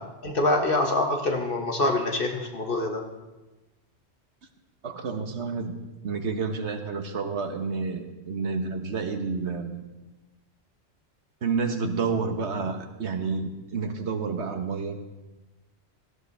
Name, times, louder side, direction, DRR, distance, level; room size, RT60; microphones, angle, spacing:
voice 1, 0.2-3.0, left 2 dB, 55° left, 2 dB, 1.8 m, -25 dB
voice 2, 4.8-5.8 6.0-9.8 11.4-15.0, right 4 dB, 90° right, 6 dB, 1.5 m, -29 dB
18.0 x 14.5 x 3.4 m, 1.1 s
omnidirectional pair, 1.1 m